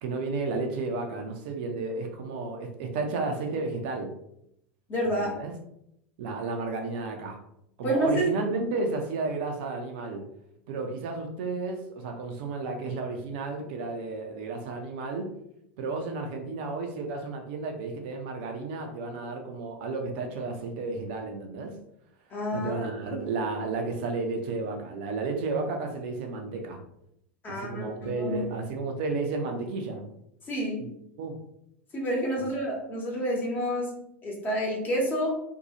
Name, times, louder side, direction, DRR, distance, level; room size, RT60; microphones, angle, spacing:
voice 1, 0.0-4.1 5.0-5.5 6.2-7.4 7.8-10.2 10.7-15.3 15.8-21.7 22.5-26.8 27.5-30.1 31.2-31.4, right 3 dB, 55° right, 3 dB, 0.5 m, -32 dB
voice 2, 4.9-5.3 7.8-8.3 22.3-22.7 23.1-23.2 27.4-28.5 30.5-31.0 31.9-35.4, equal, 30° left, -2 dB, 1.0 m, -29 dB
2.7 x 2.3 x 2.8 m, 0.76 s
figure-of-eight pair, 85°, 7 cm